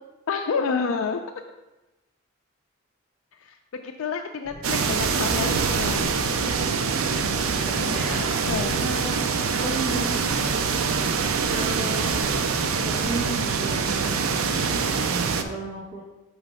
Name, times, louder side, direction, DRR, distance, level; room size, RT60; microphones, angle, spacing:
voice 1, 0.3-1.2 3.4-6.1 8.4-8.8, left 5 dB, 75° left, 4 dB, 0.4 m, -29 dB
sound 1, 4.4-13.7, left 1 dB, 20° left, 0.8 m, -40 dB
sound 2, 4.6-15.4, right 5 dB, 85° right, 0.5 m, -25 dB
voice 2, 6.9-7.2 7.7-8.4 8.8-9.2 9.5-10.5 11.4-12.4 12.8-16.0, right 2 dB, 15° right, -9 dB, 1.1 m, -34 dB
6.1 x 3.1 x 5.5 m, 1.0 s
head